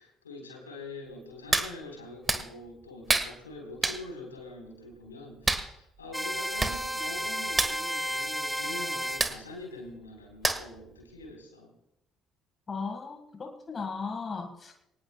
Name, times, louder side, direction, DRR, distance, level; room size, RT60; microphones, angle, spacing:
voice 1, 0.0-11.7, left 2 dB, 80° left, 1 dB, 4.1 m, -44 dB
Hands, 1.5-1.7 2.3-2.4 3.1-3.3 3.8-4.0 5.5-5.7 6.3-6.4 6.6-6.8 7.0-7.2 7.5-7.7 9.2-9.4 10.4-10.8 11.2-11.3, right 3 dB, 20° right, 1.6 m, -26 dB
sound 1, 6.1-9.2, equal, 5° right, 0.6 m, -32 dB
voice 2, 12.7-14.7, left 4 dB, 30° left, 6 dB, 1.7 m, -36 dB
23.0 x 19.0 x 2.3 m, 0.82 s
figure-of-eight pair, 50°, 0 cm